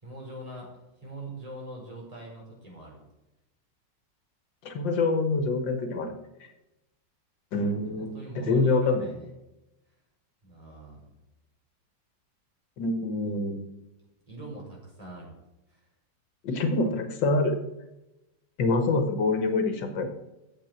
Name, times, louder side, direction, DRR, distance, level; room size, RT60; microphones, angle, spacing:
voice 1, 0.0-0.7 1.0-3.0 7.8-9.3 10.4-11.1 14.3-15.3 15.7-15.8, right 1 dB, 20° right, -3 dB, 5.0 m, -42 dB
voice 2, 4.6-6.1 7.5-8.1 8.5-9.1 12.8-13.6 16.4-17.6 18.6-20.1, left 3 dB, 85° left, 7 dB, 2.0 m, -25 dB
9.2 x 7.7 x 7.4 m, 0.93 s
omnidirectional pair, 2.0 m